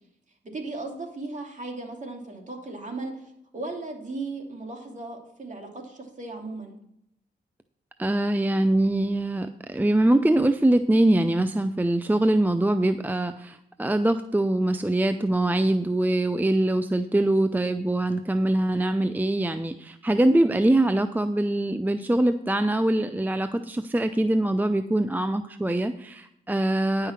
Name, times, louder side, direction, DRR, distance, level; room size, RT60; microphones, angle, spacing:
voice 1, 0.5-6.7 20.7-20.8, right 3 dB, 40° right, 2 dB, 2.7 m, -36 dB
voice 2, 8.0-27.1, right 1 dB, 10° right, 10 dB, 0.5 m, -23 dB
10.0 x 5.8 x 5.8 m, 0.76 s
cardioid pair, 55°, 19 cm